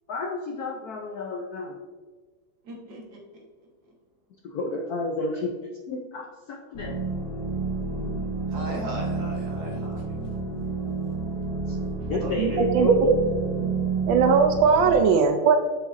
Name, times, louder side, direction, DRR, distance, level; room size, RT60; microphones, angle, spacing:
voice 1, 0.1-1.8 4.4-5.5 5.9-7.0 8.0-8.2 11.7-11.8 12.1-13.1, left 3 dB, 70° left, 2 dB, 0.9 m, -31 dB
voice 2, 2.6-3.5 8.5-10.2 12.2-12.6, right 1 dB, 50° right, -1 dB, 1.8 m, -37 dB
sound 1, 6.7-14.9, right 4 dB, 40° left, 2.7 m, -30 dB
voice 3, 12.4-12.9 14.1-15.6, right 6 dB, 75° right, 6 dB, 1.3 m, -19 dB
7.8 x 6.5 x 2.6 m, 1.4 s
omnidirectional pair, 2.3 m